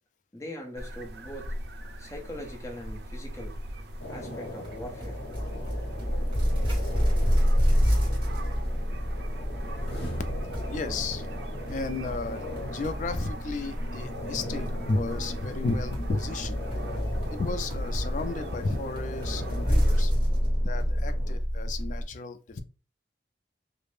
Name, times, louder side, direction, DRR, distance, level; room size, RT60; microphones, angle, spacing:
voice 1, 0.3-1.5 2.0-3.6 4.1-5.2, equal, 15° left, 0.7 m, -41 dB
sound 1, 0.8-20.0, equal, 70° right, 0.4 m, -39 dB
sound 2, 4.0-21.4, left 1 dB, 75° left, 0.9 m, -40 dB
sound 3, 4.6-22.0, equal, 30° right, 1.3 m, -29 dB
voice 2, 10.7-11.3 11.7-16.7 17.3-20.1 20.6-22.6, left 3 dB, 45° left, 0.3 m, -33 dB
2.5 x 2.0 x 3.2 m
head